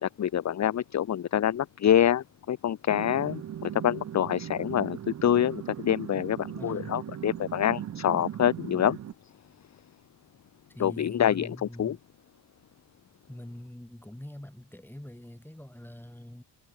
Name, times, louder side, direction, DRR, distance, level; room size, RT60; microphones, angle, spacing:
voice 1, 0.0-9.0 10.8-12.0, left 10 dB, 40° left, 0.7 m, -26 dB
sound 1, 2.9-9.1, right 10 dB, 40° right, 0.5 m, -38 dB
voice 2, 6.6-7.0 10.7-12.0 13.3-16.4, left 1 dB, 5° left, 6.1 m, -44 dB
cardioid pair, 125°, 43 cm